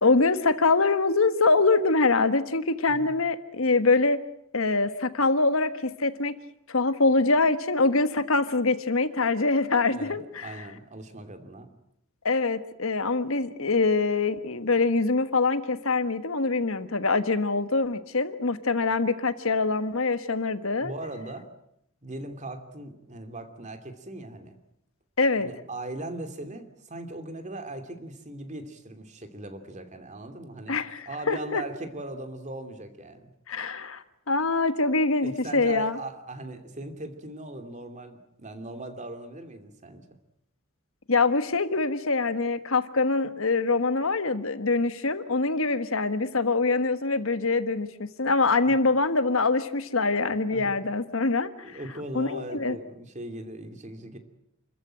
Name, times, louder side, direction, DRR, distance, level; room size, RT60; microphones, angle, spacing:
voice 1, 0.0-4.2 4.5-6.3 6.7-10.2 12.2-20.9 25.2-25.5 30.7-31.6 33.5-36.0 41.1-51.5 52.1-52.8, left 3 dB, 65° left, 11 dB, 1.4 m, -24 dB
voice 2, 9.9-11.7 20.8-21.5 22.0-24.6 25.4-30.8 31.1-33.3 35.2-40.0 48.7-48.8 50.5-50.8 51.6-54.2, right 1 dB, 35° right, 8 dB, 2.7 m, -39 dB
29.5 x 14.5 x 9.0 m, 0.78 s
head